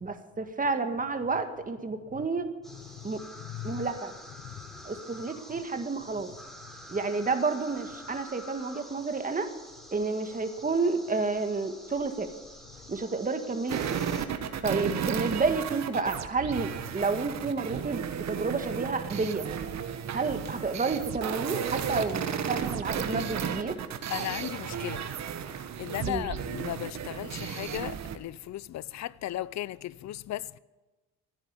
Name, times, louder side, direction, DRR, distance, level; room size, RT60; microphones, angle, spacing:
voice 1, 0.0-2.5 3.0-3.2 3.6-4.1 4.8-6.3 6.9-9.5 9.9-12.3 12.9-14.0 14.6-19.5 20.1-23.8 26.1-26.3, right 4 dB, 25° right, 1.8 m, -30 dB
sound 1, 2.6-14.3, equal, ahead, 3.6 m, -48 dB
voice 2, 2.9-3.9 4.4-4.9 14.5-14.6 20.1-20.2 23.4-23.5 24.1-25.0 25.4-30.6, left 13 dB, 65° left, 0.6 m, -37 dB
sound 2, 13.7-28.2, right 8 dB, 65° right, 1.5 m, -34 dB
14.0 x 9.9 x 8.5 m
cardioid pair, 90°, 30 cm